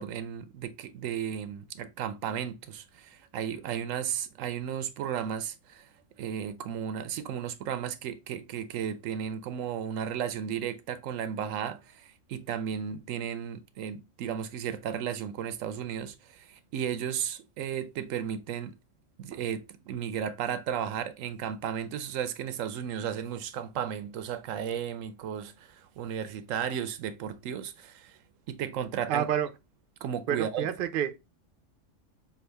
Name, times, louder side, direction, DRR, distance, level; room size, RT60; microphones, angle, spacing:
voice 1, 0.0-5.9 6.2-18.7 19.2-28.2 28.5-29.3 30.0-30.7, right 8 dB, 80° right, 1.0 m, -34 dB
voice 2, 29.1-29.5 30.3-31.2, right 9 dB, 55° right, 0.6 m, -28 dB
5.7 x 2.4 x 3.3 m
omnidirectional pair, 1.3 m